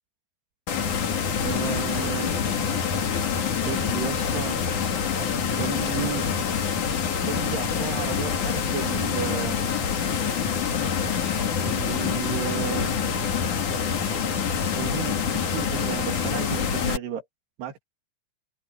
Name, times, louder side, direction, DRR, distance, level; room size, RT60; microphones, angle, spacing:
sound 1, 0.7-17.0, left 7 dB, 50° left, 3.6 m, -26 dB
voice 1, 1.4-2.3 3.6-4.6 5.6-6.4 7.2-9.6 11.6-13.0 14.8-17.2 17.6-17.8, right 9 dB, 80° right, 4.9 m, -33 dB
open air
omnidirectional pair, 4.6 m